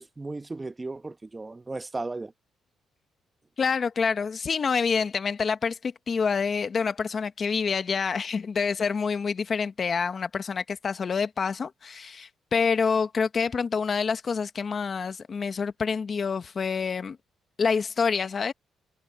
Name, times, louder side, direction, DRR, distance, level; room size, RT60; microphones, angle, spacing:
voice 1, 0.0-2.3, right 3 dB, 20° right, 1.1 m, -35 dB
voice 2, 3.6-17.2 17.6-18.5, left 5 dB, 45° left, 1.1 m, -27 dB
cardioid pair, 90°, 0 cm